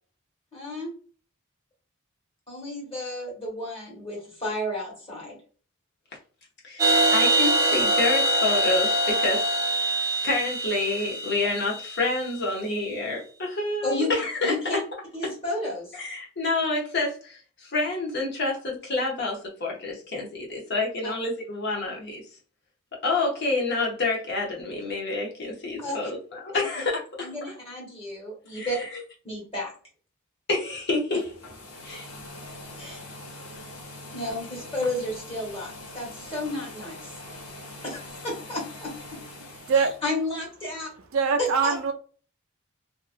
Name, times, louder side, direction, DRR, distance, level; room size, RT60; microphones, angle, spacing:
voice 1, 0.5-0.9 2.5-5.4 13.8-14.1 14.4-14.8 15.1-15.9 21.0-21.1 25.8-26.1 26.5-26.6 27.2-28.8 29.2-29.7 32.8-33.0 34.1-37.1 37.8-39.2 39.7-40.9 41.4-41.9, left 1 dB, 25° left, 1.4 m, -32 dB
voice 2, 6.6-9.5 10.2-14.8 15.2-15.3 15.9-22.2 23.0-27.3 28.5-28.9 30.5-31.3 31.8-32.1, left 2 dB, 50° left, 0.8 m, -28 dB
sound 1, 6.8-12.4, right 1 dB, 15° right, 0.7 m, -24 dB
sound 2, 31.2-40.0, left 1 dB, 85° left, 0.8 m, -43 dB
voice 3, 41.1-41.9, right 5 dB, 70° right, 0.5 m, -22 dB
2.8 x 2.4 x 2.5 m
head